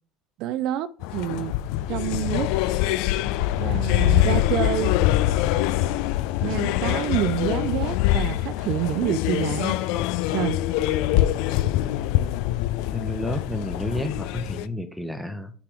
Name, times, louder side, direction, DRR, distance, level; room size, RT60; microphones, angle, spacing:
voice 1, 0.4-1.5 1.9-2.5 3.6-5.0 6.4-9.8 10.3-10.6, right 12 dB, 65° right, 0.4 m, -27 dB
sound 1, 1.0-14.7, left 14 dB, 70° left, 0.3 m, -24 dB
voice 2, 12.9-15.5, left 1 dB, ahead, 0.9 m, -31 dB
5.9 x 4.9 x 3.4 m
supercardioid pair, 100°, 0 cm